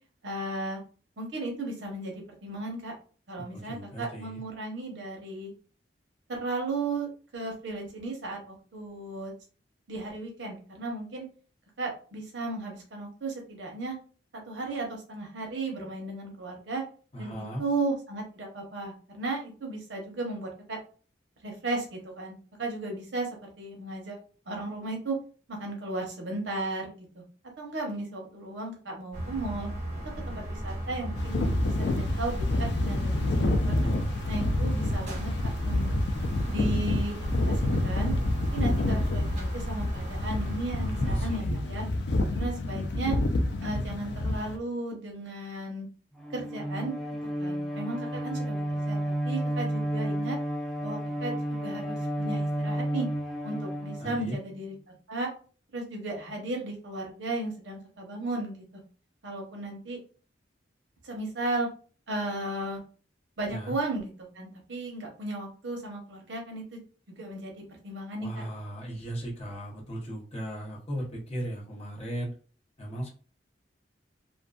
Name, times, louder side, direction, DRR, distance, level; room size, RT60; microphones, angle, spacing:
voice 1, 0.2-0.8 1.2-2.9 3.3-5.5 6.3-9.3 9.9-11.2 11.8-14.0 14.5-16.8 17.2-20.8 21.4-24.2 24.5-25.2 25.5-27.2 27.6-29.7 30.3-33.2 33.6-33.8 34.3-35.3 35.6-35.9 36.5-37.2 37.5-38.1 38.5-41.9 42.3-43.2 43.6-45.9 46.3-47.0 47.4-50.4 50.8-53.1 53.4-54.7 55.1-55.3 55.7-58.6 59.2-60.0 61.0-61.7 62.1-62.8 63.4-64.1 64.3-66.8 67.2-68.5, right 2 dB, 80° right, 0 dB, 0.8 m, -35 dB
voice 2, 3.5-4.4 17.1-17.6 33.8-34.2 40.8-41.6 54.0-54.4 63.5-63.7 68.2-72.3 72.8-73.1, right 1 dB, 35° left, -2 dB, 0.9 m, -37 dB
sound 1, 29.1-41.4, equal, 40° right, 1.0 m, -36 dB
sound 2, 31.1-44.6, left 1 dB, 65° left, 0.4 m, -28 dB
Bowed string instrument, 46.2-54.6, right 1 dB, ahead, 0.4 m, -32 dB
2.6 x 2.5 x 2.3 m, 0.39 s
head